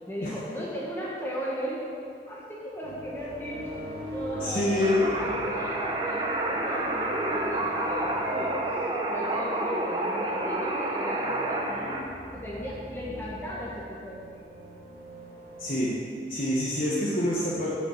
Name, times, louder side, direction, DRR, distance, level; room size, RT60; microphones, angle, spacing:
voice 1, 0.1-1.9 2.3-8.5 9.1-11.9 12.3-14.6, equal, 15° left, -5 dB, 1.4 m, -37 dB
sound 1, 2.8-15.8, equal, 70° right, 3.1 m, -42 dB
voice 2, 4.4-5.1 15.6-15.9 16.3-17.7, left 1 dB, 50° left, -7 dB, 1.5 m, -26 dB
sound 2, 4.8-12.0, right 1 dB, 25° right, 1.1 m, -29 dB
8.8 x 7.1 x 7.3 m, 2.5 s
head